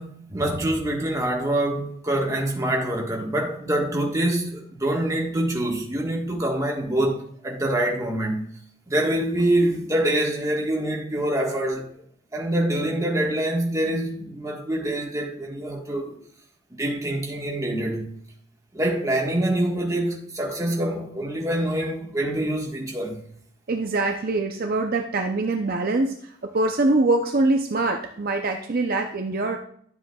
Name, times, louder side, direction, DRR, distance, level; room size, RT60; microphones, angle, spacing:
voice 1, 0.0-8.5 8.9-11.9 12.3-16.2 16.7-18.1 18.7-23.2, right 1 dB, 15° right, 1.4 m, -25 dB
voice 2, 23.7-29.6, right 2 dB, 45° right, 0.6 m, -24 dB
11.5 x 7.6 x 2.3 m
head